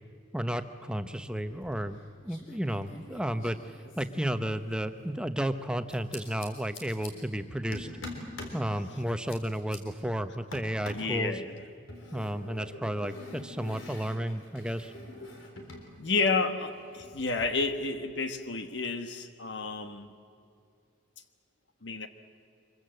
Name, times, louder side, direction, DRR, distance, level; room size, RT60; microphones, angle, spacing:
voice 1, 0.3-7.9 8.5-11.4 12.1-14.9, equal, 5° right, 9 dB, 0.8 m, -33 dB
sound 1, 1.5-2.0 2.3-4.9 5.9-7.1 7.7-8.6 9.0-9.8 10.5-11.1 11.9-15.9 16.1-17.4, left 2 dB, 85° left, 3.9 m, -46 dB
voice 2, 10.9-11.6 16.0-20.1 21.8-22.1, left 3 dB, 65° left, 8 dB, 1.3 m, -31 dB
25.5 x 23.0 x 7.8 m, 2.4 s
head